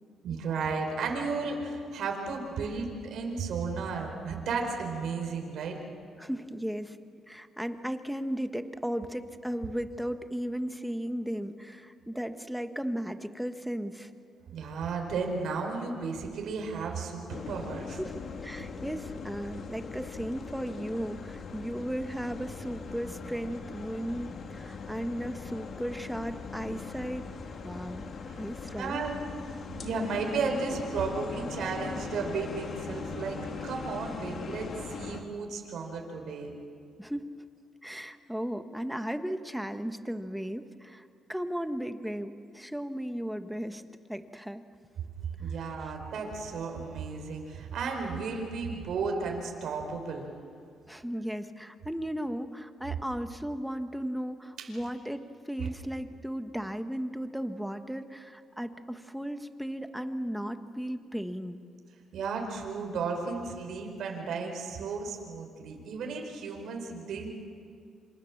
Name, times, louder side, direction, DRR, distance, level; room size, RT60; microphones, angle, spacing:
voice 1, 0.2-5.8 14.5-18.0 28.3-28.4 28.7-29.2 29.8-36.5 45.4-50.3 54.6-54.7 55.6-55.7 62.1-67.3, right 4 dB, 70° right, 2 dB, 4.8 m, -34 dB
voice 2, 6.2-7.0 7.3-14.1 17.9-27.3 27.6-28.1 28.4-29.0 37.0-37.3 37.8-43.8 44.1-44.6 45.8-45.9 50.9-61.6, equal, ahead, 8 dB, 1.5 m, -35 dB
sound 1, 17.3-35.2, left 5 dB, 55° left, 2.4 m, -40 dB
27.5 x 26.5 x 7.4 m, 2.3 s
cardioid pair, 90°, 0 cm